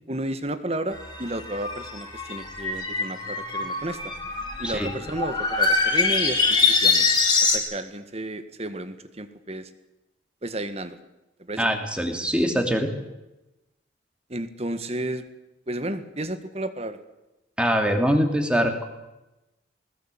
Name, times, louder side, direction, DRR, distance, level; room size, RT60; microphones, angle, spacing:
voice 1, 0.1-4.1 4.6-7.1 7.4-9.7 10.4-11.0 11.4-11.7 14.3-15.3 15.7-17.0, right 1 dB, 35° right, 11 dB, 1.8 m, -32 dB
sound 1, 0.9-7.6, left 4 dB, 25° left, 3.4 m, -24 dB
voice 2, 11.6-12.9 17.6-18.8, equal, 5° right, 4 dB, 3.0 m, -23 dB
20.5 x 19.5 x 8.6 m, 0.98 s
head